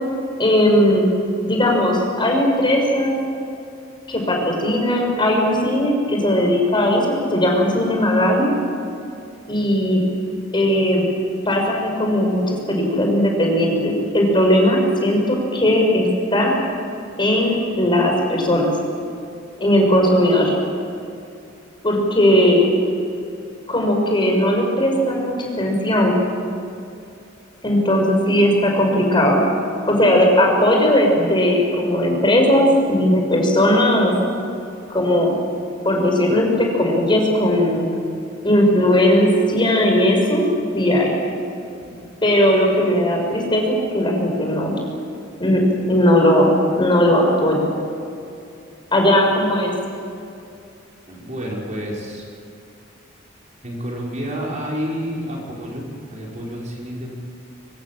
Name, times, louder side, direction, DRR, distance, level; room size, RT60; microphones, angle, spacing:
voice 1, 0.4-1.1 1.4-3.2 4.1-8.5 9.5-10.1 10.5-11.1 11.5-16.5 17.2-18.7 19.6-20.5 21.8-22.7 23.7-26.2 27.6-29.4 29.9-34.1 34.9-35.3 35.8-37.9 38.4-40.5 40.7-41.1 42.2-44.8 45.4-46.5 46.7-47.6 48.9-49.7, left 1 dB, 25° left, 1 dB, 6.1 m, -17 dB
voice 2, 51.1-52.2 53.6-57.1, equal, 40° right, -3 dB, 5.2 m, -29 dB
24.5 x 24.5 x 7.6 m, 2.6 s
head